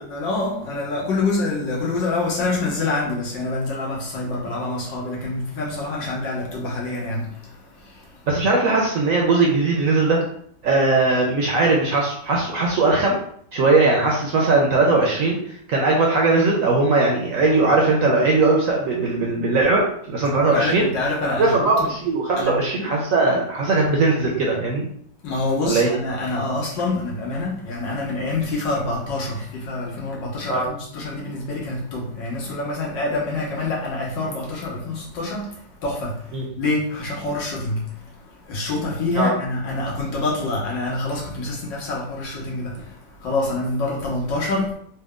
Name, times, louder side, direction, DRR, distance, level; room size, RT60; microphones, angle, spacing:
voice 1, 0.0-8.3 20.5-21.9 22.4-22.6 25.2-44.7, left 2 dB, 85° left, 1.8 m, -26 dB
voice 2, 8.3-10.2 10.6-13.2 13.5-15.4 15.7-20.8 21.4-24.8 25.7-25.9 30.5-30.7 36.3-36.4 39.2-39.3, right 3 dB, 65° right, 0.9 m, -19 dB
4.3 x 2.2 x 3.6 m
omnidirectional pair, 1.9 m